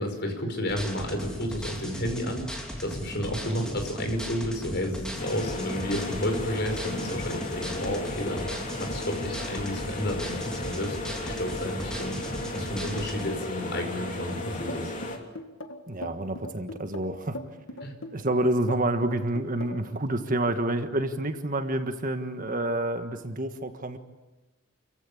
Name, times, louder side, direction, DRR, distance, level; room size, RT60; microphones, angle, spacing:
voice 1, 0.0-12.2 12.5-14.9 17.8-17.9, left 1 dB, 55° left, 5 dB, 5.3 m, -31 dB
sound 1, 0.7-13.2, equal, 5° left, 3.3 m, -37 dB
sound 2, 5.2-15.2, left 2 dB, 40° left, 3.0 m, -35 dB
sound 3, 14.7-19.9, left 1 dB, 70° left, 2.1 m, -39 dB
voice 2, 15.9-17.6 18.1-24.0, right 1 dB, 40° right, 7 dB, 1.5 m, -28 dB
29.5 x 15.5 x 8.7 m, 1.2 s
head